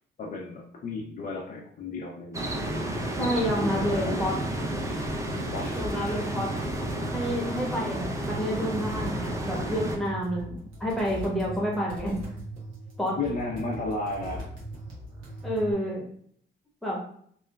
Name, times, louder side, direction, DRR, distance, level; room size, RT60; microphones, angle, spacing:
voice 1, 0.2-2.5 2.8-4.3 5.5-6.6 13.2-14.5, left 3 dB, 45° left, -1 dB, 0.5 m, -35 dB
sound 1, 2.3-10.0, right 1 dB, 15° right, 0.4 m, -31 dB
voice 2, 3.2-4.3 5.7-6.5 7.1-12.2 13.0-13.2 15.4-16.0 16.8-17.0, equal, ahead, -3 dB, 1.0 m, -29 dB
sound 2, 5.1-15.7, right 1 dB, 90° right, 1.0 m, -40 dB
2.9 x 2.2 x 2.2 m, 0.63 s
cardioid pair, 90°, 20 cm